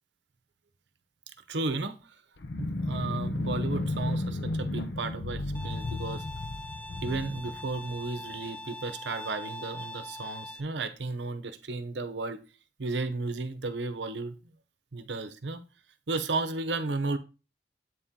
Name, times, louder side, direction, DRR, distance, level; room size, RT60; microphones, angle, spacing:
voice 1, 1.5-2.2 2.6-6.2 7.0-12.4 12.8-14.4 14.9-15.6 16.1-17.2, right 3 dB, 70° right, 10 dB, 0.8 m, -33 dB
sound 1, 2.4-8.3, left 2 dB, 70° left, 0.7 m, -33 dB
Bowed string instrument, 5.5-10.6, left 1 dB, 10° left, 0.4 m, -42 dB
8.2 x 4.3 x 3.7 m, 0.31 s
head